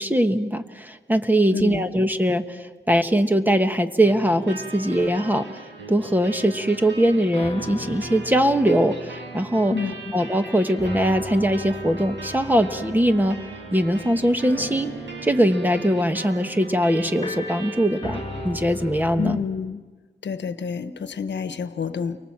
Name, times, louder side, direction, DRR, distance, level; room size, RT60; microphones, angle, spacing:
voice 1, 0.0-5.5 5.9-9.8 10.1-13.4 13.7-14.9 15.2-19.4, equal, 10° right, 7 dB, 1.4 m, -21 dB
voice 2, 1.5-1.9 9.7-10.0 19.2-19.8 20.2-22.2, left 5 dB, 70° left, 11 dB, 1.2 m, -28 dB
sound 1, 4.0-19.0, right 4 dB, 80° right, 7.3 m, -39 dB
sound 2, 7.3-10.5 10.8-19.4, left 2 dB, 25° left, 3.1 m, -38 dB
30.0 x 24.0 x 7.4 m, 1.3 s
wide cardioid pair, 105°, 19 cm